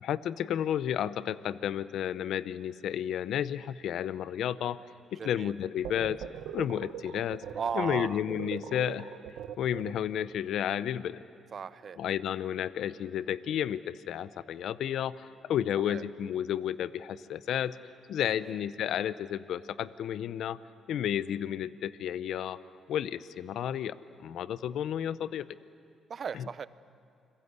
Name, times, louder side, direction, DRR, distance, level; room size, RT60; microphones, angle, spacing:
voice 1, 0.0-4.8 5.1-6.2 6.5-7.4 7.7-9.1 9.6-11.2 12.0-17.8 18.1-20.6 20.9-22.6 22.9-25.5 26.3-26.4, left 10 dB, 75° left, 15 dB, 0.7 m, -32 dB
voice 2, 5.1-5.5 7.6-8.2 11.5-12.0 15.9-16.0 18.4-18.6 26.1-26.7, right 6 dB, 50° right, 15 dB, 0.8 m, -36 dB
sound 1, 5.8-10.3, right 10 dB, 85° right, 1.1 m, -41 dB
29.0 x 22.0 x 8.2 m, 2.6 s
cardioid pair, 90°, 0 cm